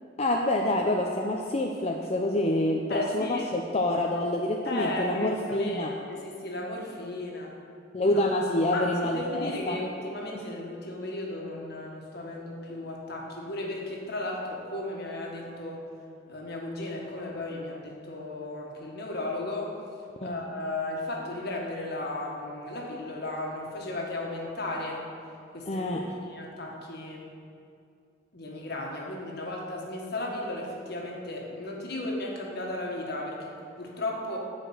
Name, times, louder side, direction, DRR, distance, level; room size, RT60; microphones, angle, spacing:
voice 1, 0.2-5.9 7.9-9.8 20.2-20.4 25.7-26.0, left 1 dB, 35° left, 0 dB, 0.6 m, -27 dB
voice 2, 2.9-3.4 4.6-7.5 8.0-8.1 8.7-15.8 16.3-19.8 20.2-25.0 25.5-27.3 28.3-34.4, left 1 dB, 60° left, -1 dB, 1.6 m, -35 dB
10.0 x 4.9 x 7.9 m, 2.4 s
head